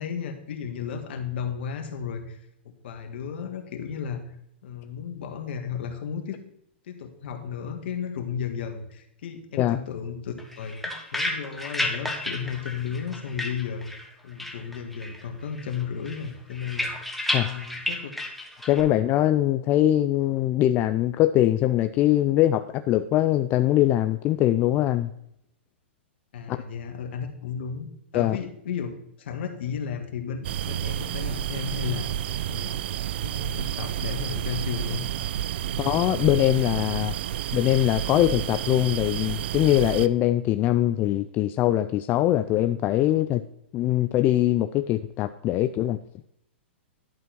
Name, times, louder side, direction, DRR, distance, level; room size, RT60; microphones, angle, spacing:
voice 1, 0.0-2.4 2.8-4.2 4.6-6.4 6.9-13.9 14.2-16.9 17.3-18.1 26.3-27.9 28.1-28.9 29.2-32.1 32.5-32.9 33.2-35.1 35.6-35.8, left 7 dB, 65° left, 6 dB, 1.8 m, -34 dB
sound 1, 10.4-14.1 14.4-15.3 15.6-18.8, left 1 dB, ahead, 1.4 m, -32 dB
voice 2, 18.6-25.1 26.5-26.6 28.1-28.4 35.8-37.1 37.5-43.4 43.7-46.0, left 13 dB, 30° left, 10 dB, 0.4 m, -22 dB
sound 2, 30.4-40.1, right 11 dB, 60° right, 0.4 m, -30 dB
11.0 x 4.5 x 5.9 m, 0.74 s
hypercardioid pair, 115°, 6 cm